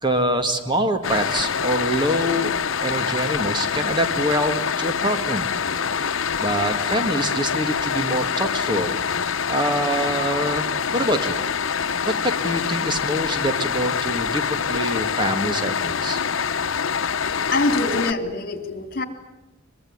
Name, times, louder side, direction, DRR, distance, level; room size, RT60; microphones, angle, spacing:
voice 1, 0.0-5.5 6.4-9.1 9.5-11.4 12.1-16.2, right 1 dB, 25° right, 7 dB, 2.1 m, -25 dB
sound 1, 1.0-18.1, left 6 dB, 80° left, 0.9 m, -25 dB
voice 2, 17.5-19.1, left 2 dB, 50° left, 7 dB, 3.5 m, -24 dB
23.5 x 23.0 x 9.7 m, 1.0 s
head